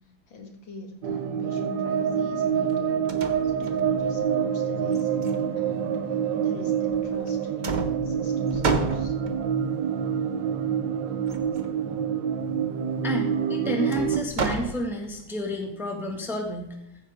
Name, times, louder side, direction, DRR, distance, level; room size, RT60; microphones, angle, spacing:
voice 1, 0.3-3.1 3.4-6.0 6.4-9.1, left 4 dB, 70° left, 3 dB, 2.4 m, -41 dB
sound 1, 1.0-14.2, right 8 dB, 70° right, 1.4 m, -27 dB
sound 2, 2.7-2.8 3.1-4.2 4.9-5.9 6.9-7.3 7.6-9.6 11.3-11.8 13.9-15.3, right 3 dB, 55° right, 0.5 m, -31 dB
voice 2, 13.0-16.8, equal, ahead, 2 dB, 1.4 m, -30 dB
14.5 x 8.1 x 3.6 m, 0.83 s
omnidirectional pair, 2.2 m